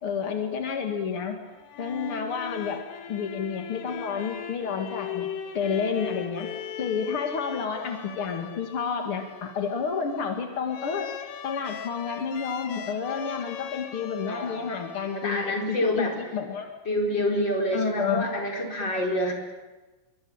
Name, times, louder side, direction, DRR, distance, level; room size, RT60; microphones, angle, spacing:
voice 1, 0.0-1.4 1.8-2.8 3.1-6.5 6.8-11.1 11.4-16.7 17.7-18.3, left 6 dB, 55° left, 4 dB, 1.5 m, -30 dB
sound 1, 1.5-16.1, left 9 dB, 80° left, 4.1 m, -39 dB
voice 2, 15.1-16.1 16.8-19.3, left 1 dB, 25° left, 2 dB, 4.8 m, -27 dB
27.0 x 23.5 x 8.9 m, 1.2 s
omnidirectional pair, 5.8 m